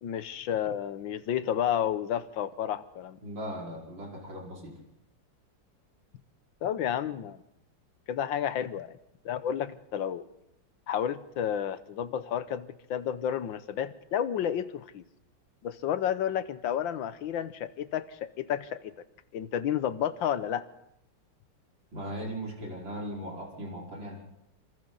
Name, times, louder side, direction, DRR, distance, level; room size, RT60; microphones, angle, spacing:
voice 1, 0.0-3.2 6.6-7.4 8.1-9.0 9.2-10.2 10.9-15.0 15.6-18.9 19.3-20.6, left 9 dB, 85° left, 13 dB, 1.7 m, -31 dB
voice 2, 3.2-4.7 21.9-24.2, equal, 85° right, -2 dB, 5.8 m, -38 dB
26.0 x 26.0 x 4.0 m, 0.83 s
omnidirectional pair, 2.0 m